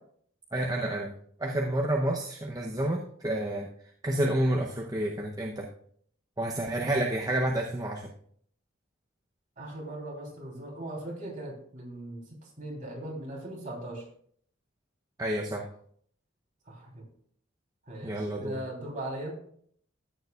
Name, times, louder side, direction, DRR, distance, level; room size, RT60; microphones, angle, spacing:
voice 1, 0.5-1.1 1.4-3.7 4.0-5.7 6.4-8.1 15.2-15.7 18.0-18.6, right 1 dB, 20° right, 0 dB, 0.7 m, -29 dB
voice 2, 9.6-14.0 16.6-17.0 17.9-19.3, right 1 dB, 40° right, -3 dB, 3.2 m, -39 dB
13.5 x 9.2 x 2.4 m, 0.62 s
head